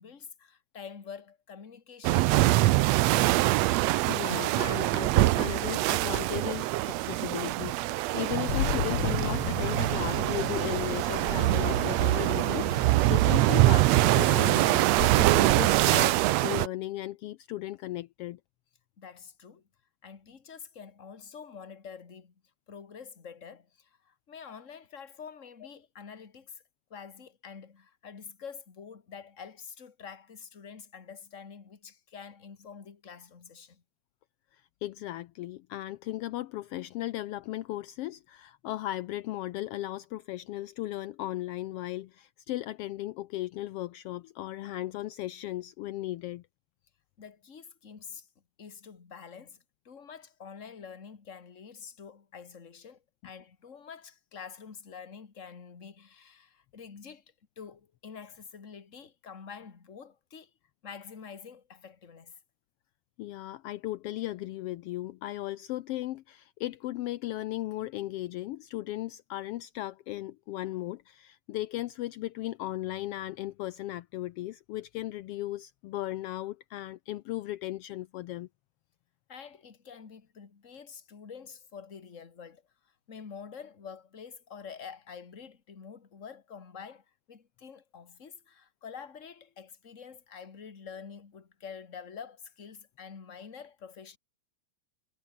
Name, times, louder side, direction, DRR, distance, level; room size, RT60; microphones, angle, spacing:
voice 1, 0.0-2.9 19.0-19.6 20.0-22.3 22.7-26.6 26.9-33.8 47.2-48.3 48.6-57.2 57.6-60.5 60.8-62.4 79.3-82.6 83.1-94.2, left 6 dB, 30° left, 1.9 m, -47 dB
sound 1, 2.0-16.7, right 17 dB, 80° right, 1.7 m, -24 dB
voice 2, 3.6-18.4 34.5-46.4 63.2-78.5, left 15 dB, 80° left, 1.4 m, -36 dB
sound 2, 8.5-15.3, left 7 dB, 50° left, 2.9 m, -36 dB
omnidirectional pair, 3.3 m